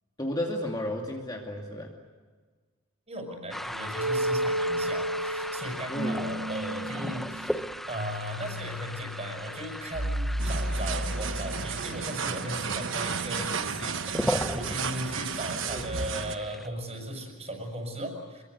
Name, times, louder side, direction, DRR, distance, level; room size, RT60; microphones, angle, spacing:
voice 1, 0.2-2.0 5.9-6.3 15.6-15.9, left 1 dB, 20° left, 0 dB, 2.4 m, -33 dB
voice 2, 3.1-18.4, right 1 dB, 30° right, 3 dB, 6.7 m, -37 dB
sound 1, 3.5-16.7, equal, ahead, 0.9 m, -37 dB
sound 2, 3.9-11.8, equal, 75° right, 2.6 m, -32 dB
sound 3, 10.4-16.4, right 6 dB, 60° right, 1.2 m, -33 dB
26.0 x 23.0 x 8.3 m, 1.4 s
head